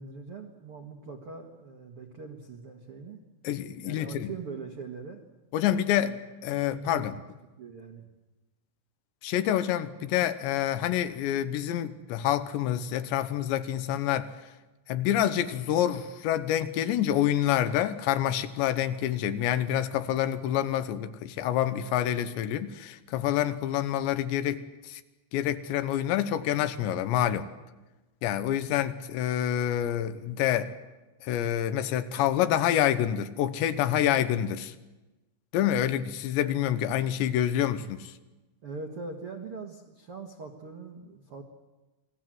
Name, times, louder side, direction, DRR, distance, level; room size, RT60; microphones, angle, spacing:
voice 1, 0.0-3.2 3.8-5.2 5.9-6.2 6.5-7.2 7.6-8.1 38.6-41.4, right 4 dB, 70° right, 1.3 m, -42 dB
voice 2, 3.4-4.3 5.5-7.1 9.2-14.3 14.9-25.0 25.3-27.5 28.2-30.7 31.2-34.7 35.5-38.1, left 11 dB, 75° left, 3.0 m, -27 dB
28.0 x 20.0 x 7.7 m
omnidirectional pair, 5.5 m